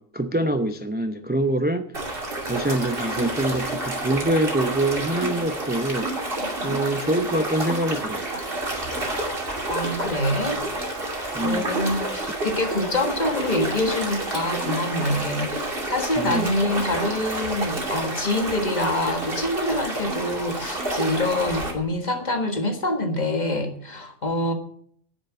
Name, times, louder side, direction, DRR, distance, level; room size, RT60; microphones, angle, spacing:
voice 1, 0.0-1.9 2.4-6.1 6.6-8.2 11.3-11.7 16.2-16.5, right 1 dB, 10° right, 0.5 m, -25 dB
sound 1, 1.9-21.7, right 2 dB, 45° right, 2.9 m, -29 dB
voice 2, 9.7-10.6 11.1-24.5, left 1 dB, 35° left, 1.7 m, -26 dB
10.0 x 7.1 x 9.4 m
omnidirectional pair, 1.3 m